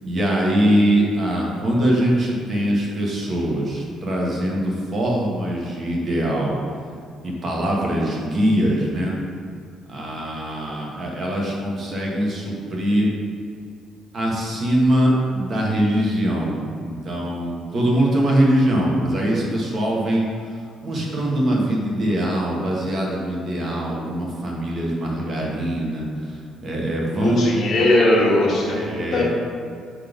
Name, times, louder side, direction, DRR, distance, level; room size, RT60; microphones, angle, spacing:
voice 1, 0.0-6.6 7.2-9.2 9.9-13.1 14.1-20.3 20.8-26.4 26.6-27.4 28.7-29.2, right 1 dB, 35° right, -2 dB, 1.2 m, -22 dB
voice 2, 27.1-29.2, left 1 dB, 45° left, -4 dB, 1.4 m, -19 dB
6.5 x 4.0 x 5.2 m, 2.3 s
cardioid pair, 155°, 0 cm